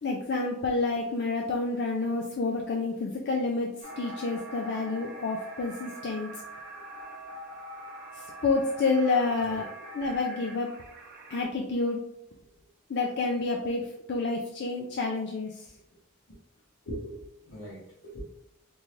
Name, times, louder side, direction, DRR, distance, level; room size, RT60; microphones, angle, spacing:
voice 1, 0.0-3.7 4.0-6.3 8.1-9.7 9.9-10.7 11.3-12.0 12.9-15.7, left 3 dB, 55° left, 0 dB, 0.4 m, -29 dB
sound 1, 3.8-11.4, right 1 dB, 40° right, 0.8 m, -43 dB
voice 2, 16.9-18.2, equal, 85° left, -8 dB, 1.0 m, -40 dB
3.7 x 3.1 x 2.5 m, 0.82 s
head